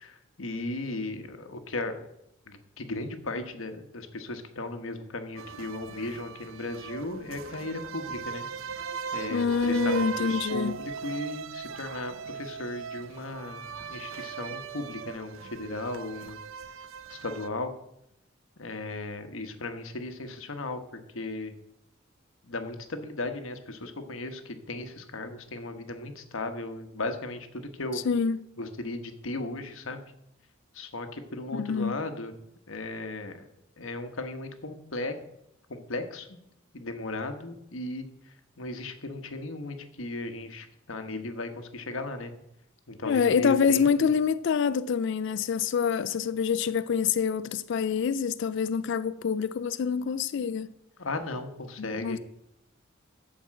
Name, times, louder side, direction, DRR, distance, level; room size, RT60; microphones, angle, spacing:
voice 1, 0.0-2.1 2.5-8.5 9.1-16.4 17.1-17.7 18.6-20.8 21.1-21.5 22.4-28.0 28.6-30.1 30.7-32.3 32.7-33.4 33.8-35.1 35.7-36.4 36.7-38.1 38.6-42.3 42.9-43.9 51.0-52.2, left 2 dB, 75° left, 1.2 m, -36 dB
sound 1, 5.4-17.5, right 7 dB, 75° right, 0.6 m, -38 dB
voice 2, 9.3-10.7 27.9-28.4 31.5-32.0 43.0-50.7 51.8-52.2, left 6 dB, 60° left, 0.3 m, -26 dB
12.0 x 4.7 x 7.6 m
head